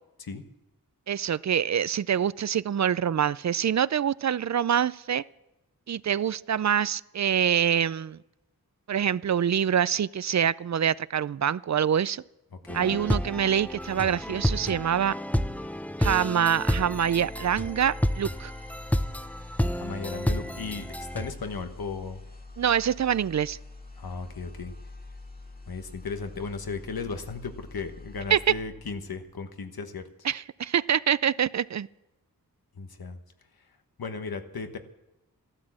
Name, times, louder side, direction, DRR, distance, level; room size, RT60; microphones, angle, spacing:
voice 1, 1.1-5.2 5.9-8.2 8.9-12.2 12.7-15.1 16.0-18.5 22.6-23.6 28.3-28.4 30.2-31.9, right 8 dB, 50° right, 20 dB, 0.4 m, -25 dB
voice 2, 12.5-13.0 19.7-22.2 24.0-24.7 25.7-30.3 32.8-33.2 34.0-34.8, left 4 dB, 90° left, 8 dB, 1.3 m, -36 dB
sound 1, 12.7-21.3, equal, 5° left, 0.6 m, -30 dB
sound 2, 16.4-29.5, left 2 dB, 25° left, 2.1 m, -45 dB
14.0 x 12.5 x 7.5 m, 0.95 s
wide cardioid pair, 60°, 35 cm